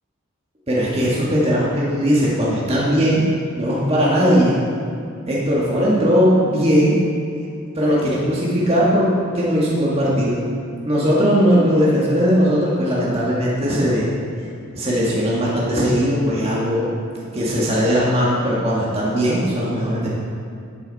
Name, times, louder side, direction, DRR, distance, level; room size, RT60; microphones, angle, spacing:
voice 1, 0.7-3.2 3.6-4.6 5.3-7.0 7.8-10.4 10.8-14.1 14.7-16.9 17.3-20.1, equal, 30° right, -6 dB, 1.8 m, -18 dB
12.5 x 8.2 x 4.1 m, 2.3 s
head